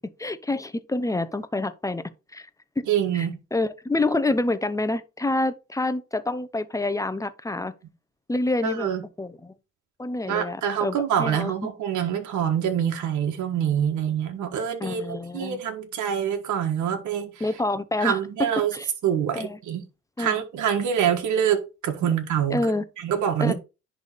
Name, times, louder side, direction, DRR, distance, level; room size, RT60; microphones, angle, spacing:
voice 1, 0.2-2.0 2.3-2.5 3.1-7.7 8.3-8.9 9.2-9.5 10.0-11.5 14.8-15.6 17.4-18.2 18.7-18.9 19.3-19.6 20.2-20.4 22.5-22.8 23.4-23.5, left 2 dB, 10° left, 0.7 m, -27 dB
voice 2, 2.9-3.4 8.6-9.0 10.3-17.4 18.0-18.7 19.0-19.8 20.2-22.6 23.0-23.5, right 9 dB, 75° right, 1.6 m, -25 dB
10.5 x 3.5 x 4.1 m
cardioid pair, 90°, 30 cm